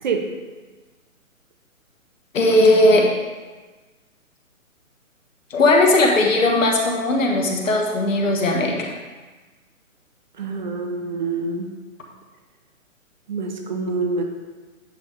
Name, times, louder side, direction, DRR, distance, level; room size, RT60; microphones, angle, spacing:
voice 1, 2.3-3.1 5.5-8.9, left 2 dB, 65° left, 0 dB, 1.5 m, -17 dB
voice 2, 10.4-11.7 13.3-14.2, right 4 dB, 35° right, 4 dB, 0.6 m, -26 dB
9.2 x 3.5 x 4.7 m, 1.3 s
hypercardioid pair, 145°, 42 cm